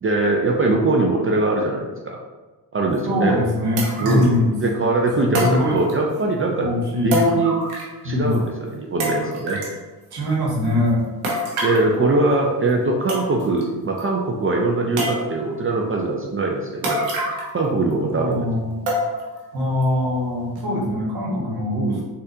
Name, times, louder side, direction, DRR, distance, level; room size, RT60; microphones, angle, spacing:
voice 1, 0.0-2.2 2.7-3.4 4.0-6.7 7.0-7.6 8.0-9.6 11.6-17.0 17.5-18.4 21.7-22.0, right 2 dB, 30° right, 0 dB, 0.5 m, -21 dB
voice 2, 3.0-4.5 5.3-5.8 6.6-7.2 8.0-8.4 10.1-11.1 18.1-18.8 19.5-22.0, left 1 dB, 55° right, -4 dB, 1.2 m, -22 dB
sound 1, 3.0-3.1 3.8-4.4 5.3-6.2 7.1-8.0 8.3-8.4 9.0-9.8 11.2-11.9 12.7-12.8 13.1-13.6 14.0-14.1 15.0-15.6 16.8-17.6 17.9-18.0 18.9-19.4 19.8-19.9 20.6-20.7, equal, 90° right, 0.9 m, -26 dB
4.0 x 2.5 x 2.7 m, 1.2 s
supercardioid pair, 60°, 44 cm